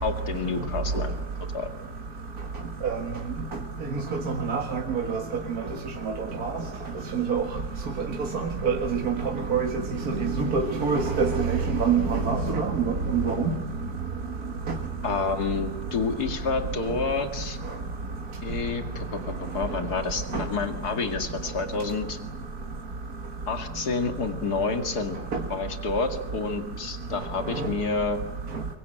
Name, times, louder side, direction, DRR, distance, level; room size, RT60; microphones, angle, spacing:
voice 1, 0.0-1.1 1.5-1.7 15.0-17.6 18.4-22.2 23.5-25.2 25.5-28.2, left 4 dB, 80° left, 7 dB, 2.7 m, -29 dB
voice 2, 4.5-5.2 6.4-6.5 7.1-7.4 8.3-9.1 9.5-9.7 10.1-13.5 20.3-20.4, right 5 dB, 70° right, 3 dB, 2.3 m, -25 dB
23.5 x 23.5 x 8.9 m, 0.93 s
omnidirectional pair, 1.7 m